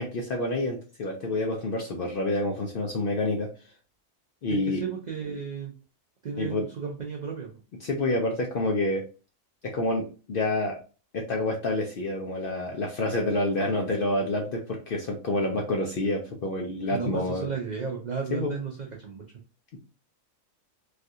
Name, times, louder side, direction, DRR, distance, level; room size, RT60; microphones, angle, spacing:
voice 1, 0.0-3.5 4.4-4.8 6.4-6.6 7.8-9.0 9.6-10.8 11.1-17.5 18.3-18.5, left 2 dB, 65° left, 1 dB, 0.5 m, -28 dB
voice 2, 4.5-5.7 6.2-7.6 16.9-19.3, right 6 dB, 75° right, 0 dB, 0.4 m, -34 dB
3.3 x 2.4 x 2.7 m, 0.36 s
omnidirectional pair, 1.4 m